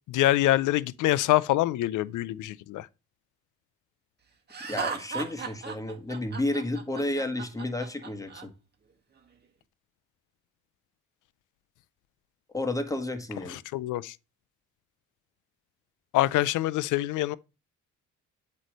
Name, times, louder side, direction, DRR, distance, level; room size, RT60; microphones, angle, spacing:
voice 1, 0.1-2.9 13.7-14.1 16.1-17.4, left 15 dB, 80° left, 0.5 m, -25 dB
Laughter, 4.5-8.4, right 5 dB, 35° right, 1.7 m, -36 dB
voice 2, 4.7-8.5 12.5-13.6, left 1 dB, 10° left, 1.5 m, -31 dB
8.2 x 3.2 x 6.4 m
cardioid pair, 90°, 30 cm